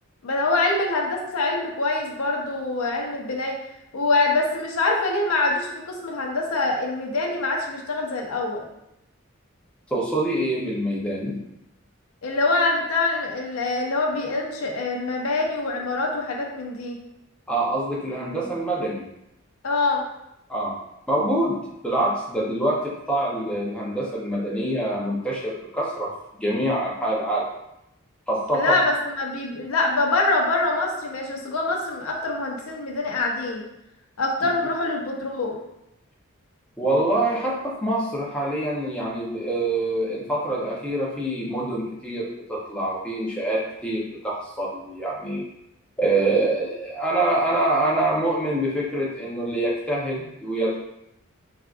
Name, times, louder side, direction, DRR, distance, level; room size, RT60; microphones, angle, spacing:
voice 1, 0.2-3.6 3.9-8.6 12.2-17.0 19.6-20.0 28.5-33.6 34.2-35.6, left 3 dB, 80° left, 0 dB, 0.6 m, -24 dB
voice 2, 9.9-11.4 17.5-19.1 20.5-20.8 21.1-27.5 28.3-28.8 36.8-45.4 46.0-50.7, right 1 dB, 5° left, -5 dB, 0.5 m, -25 dB
3.4 x 2.5 x 2.4 m, 0.84 s
head